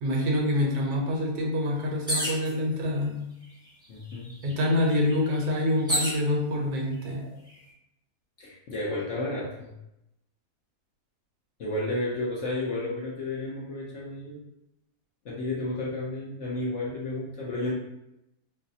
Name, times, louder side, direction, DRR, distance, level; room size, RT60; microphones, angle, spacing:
voice 1, 0.0-3.2 4.4-7.2, left 1 dB, 75° right, 0 dB, 1.2 m, -26 dB
sound 1, 2.1-2.5 3.4-3.5 3.8-6.2 7.0-7.5, equal, 5° right, 0.6 m, -30 dB
voice 2, 3.9-4.3 8.4-9.7 11.6-14.4 15.2-17.7, left 2 dB, 60° left, -5 dB, 0.8 m, -32 dB
4.0 x 2.1 x 2.6 m, 0.86 s
omnidirectional pair, 1.7 m